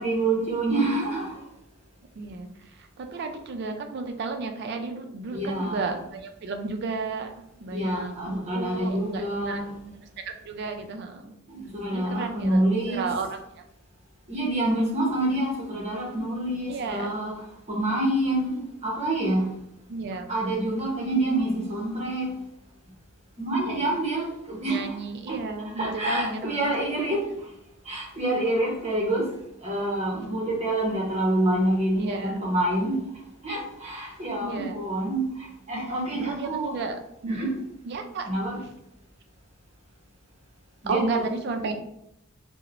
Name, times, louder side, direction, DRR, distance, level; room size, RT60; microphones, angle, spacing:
voice 1, 0.0-1.4 5.3-5.9 7.7-9.7 11.5-13.1 14.3-17.3 17.7-19.5 20.3-22.3 23.4-25.0 25.3-25.4 25.8-27.3 27.9-29.3 29.6-33.0 33.4-36.8 37.3-37.5 38.2-38.6 40.8-41.2, right 1 dB, 30° right, 0.7 m, -27 dB
voice 2, 2.2-7.3 7.6-10.0 10.2-11.4 11.9-13.4 16.7-17.1 19.9-20.3 23.5-23.8 24.6-26.7 32.0-32.4 34.4-34.8 36.1-37.5 37.9-38.3 40.9-41.7, right 4 dB, 50° right, 0.3 m, -33 dB
2.9 x 2.0 x 2.4 m
head